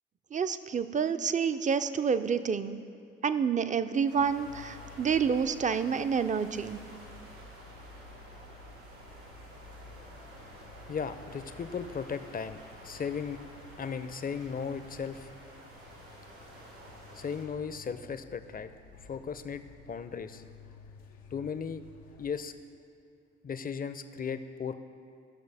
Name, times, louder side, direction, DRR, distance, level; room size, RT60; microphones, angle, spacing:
voice 1, 0.3-2.8 3.2-6.8, right 6 dB, 25° right, 11 dB, 0.5 m, -28 dB
sound 1, 4.1-22.4, left 3 dB, 90° left, 0.6 m, -53 dB
sound 2, 4.1-17.5, right 1 dB, 85° right, 2.0 m, -51 dB
voice 2, 10.9-13.4 13.8-15.3 17.1-18.7 19.0-20.4 21.3-21.8 22.2-22.5 23.4-24.7, left 6 dB, 30° left, 11 dB, 0.6 m, -36 dB
14.0 x 6.3 x 3.4 m, 2.4 s
hypercardioid pair, 45°, 30 cm